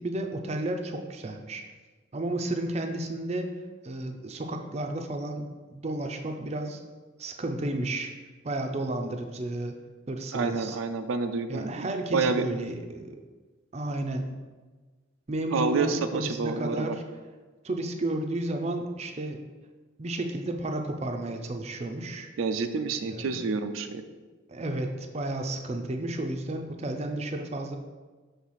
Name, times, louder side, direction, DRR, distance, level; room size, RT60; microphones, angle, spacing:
voice 1, 0.0-1.6 2.1-3.5 3.8-6.8 7.2-8.1 8.4-9.8 10.1-10.8 11.5-13.2 13.7-14.3 15.3-17.0 17.6-19.4 20.0-22.3 23.1-23.4 24.5-27.8, right 1 dB, 35° right, 4 dB, 0.5 m, -32 dB
voice 2, 10.3-12.5 15.5-17.0 22.4-24.0, right 4 dB, 85° right, 9 dB, 0.4 m, -28 dB
6.2 x 3.3 x 5.7 m, 1.3 s
head